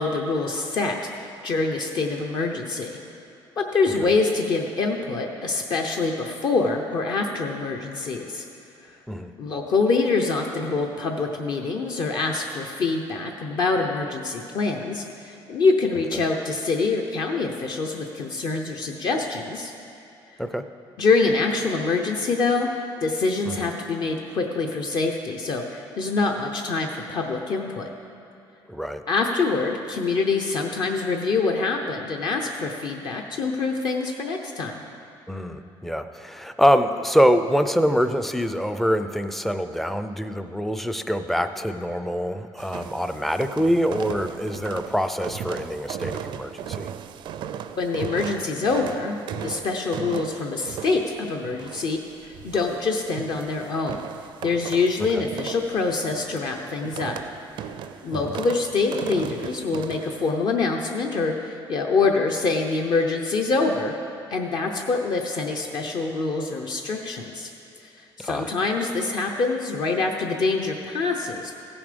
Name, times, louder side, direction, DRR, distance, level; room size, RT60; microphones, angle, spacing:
voice 1, 0.0-3.0 3.6-8.4 8.9-9.0 9.4-19.7 21.0-22.7 23.0-27.9 29.1-34.8 47.8-54.1 54.4-57.2 58.0-64.0 64.3-67.5 67.8-67.9 68.2-71.6, left 3 dB, 50° left, 2 dB, 0.8 m, -25 dB
voice 2, 28.7-29.0 35.3-46.9 55.1-55.2 58.1-58.3 68.2-68.5, equal, ahead, 9 dB, 0.4 m, -24 dB
sound 1, 42.6-60.3, right 8 dB, 60° right, 0.4 m, -37 dB
15.5 x 7.0 x 5.2 m, 2.7 s
cardioid pair, 150°, 9 cm